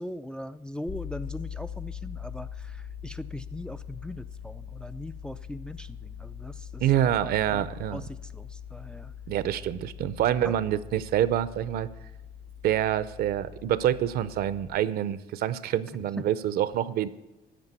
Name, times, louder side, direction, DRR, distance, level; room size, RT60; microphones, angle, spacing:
voice 1, 0.0-6.8 7.2-7.6 7.9-9.1 10.5-10.6, left 1 dB, 5° left, 9 dB, 0.3 m, -40 dB
sound 1, 0.9-14.7, left 8 dB, 60° left, 2.3 m, -42 dB
voice 2, 6.8-8.0 9.3-11.9 12.6-17.1, right 11 dB, 65° right, 16 dB, 0.6 m, -26 dB
13.5 x 5.0 x 8.2 m, 1.0 s
cardioid pair, 110°, 17 cm